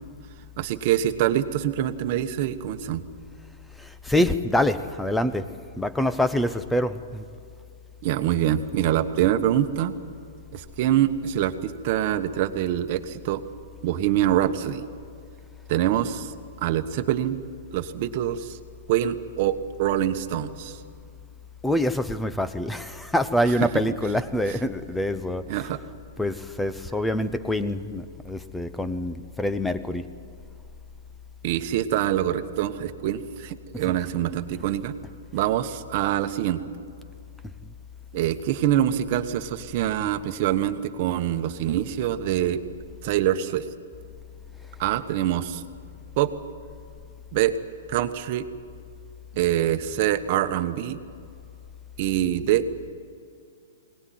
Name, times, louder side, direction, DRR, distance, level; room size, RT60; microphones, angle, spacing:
voice 1, 0.6-3.0 8.0-9.9 10.5-13.4 13.8-14.8 15.7-16.3 16.6-17.4 17.7-18.6 18.9-20.8 23.4-23.8 24.5-24.6 25.5-25.8 31.4-35.0 35.3-36.6 38.1-42.6 43.0-43.6 44.8-45.6 46.2-46.3 47.3-47.5 47.9-48.5 49.3-51.0 52.0-52.6, right 11 dB, 40° right, 8 dB, 1.2 m, -25 dB
voice 2, 3.8-7.2 21.6-25.4 26.2-30.0, left 1 dB, 5° left, 12 dB, 0.8 m, -25 dB
21.5 x 19.0 x 9.3 m, 2.4 s
hypercardioid pair, 155°, 0 cm